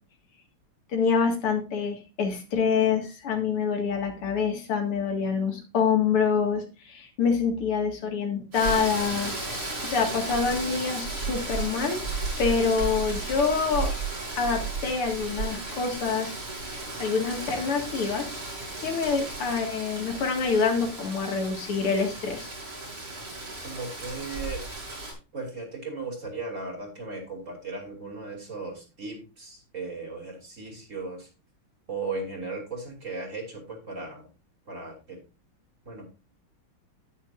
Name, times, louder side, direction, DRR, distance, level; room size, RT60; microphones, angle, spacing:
voice 1, 0.9-9.3 9.8-12.0 12.4-13.9 14.3-16.4 17.0-18.4 18.8-22.5, left 5 dB, 90° left, 3 dB, 2.8 m, -26 dB
Rain, 8.5-25.1, right 3 dB, 80° right, 5.9 m, -34 dB
voice 2, 23.6-24.6 25.3-31.3 31.9-34.3 34.7-35.2 35.9-36.0, right 3 dB, 35° right, 0 dB, 3.1 m, -36 dB
10.0 x 9.5 x 2.5 m, 0.31 s
omnidirectional pair, 2.4 m